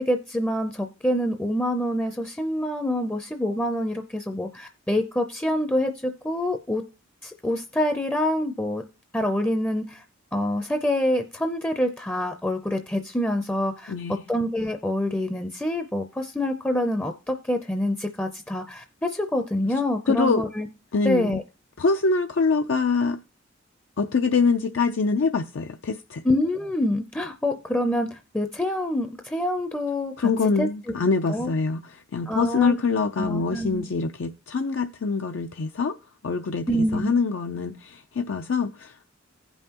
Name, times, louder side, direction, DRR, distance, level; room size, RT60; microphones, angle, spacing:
voice 1, 0.0-6.8 7.2-8.8 9.1-10.0 10.3-20.7 21.0-21.4 26.2-30.3 30.6-30.7 31.3-31.5 32.3-32.7 33.2-33.9 36.7-37.2, left 1 dB, 10° left, 0.5 m, -26 dB
voice 2, 13.9-14.2 20.1-20.4 20.9-21.3 21.8-23.2 24.0-26.2 30.2-31.8 32.1-35.9 36.2-39.1, left 4 dB, 70° left, 0.5 m, -24 dB
16.0 x 5.5 x 2.9 m
head